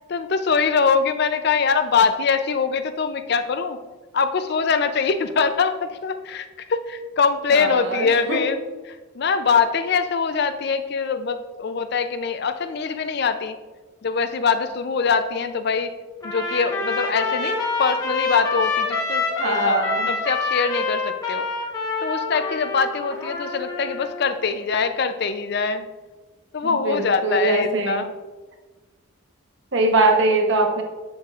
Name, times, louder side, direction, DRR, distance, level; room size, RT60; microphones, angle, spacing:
voice 1, 0.1-3.8 4.1-13.6 14.0-15.9 16.2-21.5 22.0-25.9 26.5-28.1, left 5 dB, 50° left, 10 dB, 0.4 m, -23 dB
voice 2, 7.5-8.5 19.4-20.1 26.8-28.1 29.7-30.8, right 2 dB, 60° right, 3 dB, 1.0 m, -21 dB
Trumpet, 16.2-24.3, left 3 dB, 15° left, 1.0 m, -26 dB
7.8 x 7.4 x 2.4 m, 1.3 s
head